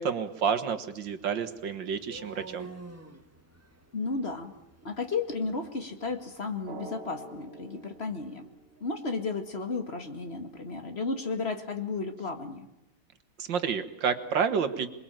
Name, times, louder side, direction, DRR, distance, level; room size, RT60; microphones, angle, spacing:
voice 1, 0.0-2.7 13.4-14.9, right 6 dB, 85° right, 10 dB, 2.3 m, -29 dB
sound 1, 1.0-9.0, right 3 dB, 10° right, 1.7 m, -51 dB
voice 2, 3.9-4.5 4.8-8.5 8.8-12.7, left 4 dB, 35° left, 6 dB, 2.1 m, -33 dB
Drum, 6.7-9.2, right 2 dB, 35° right, 1.8 m, -46 dB
27.0 x 21.0 x 9.0 m, 0.89 s
omnidirectional pair, 1.9 m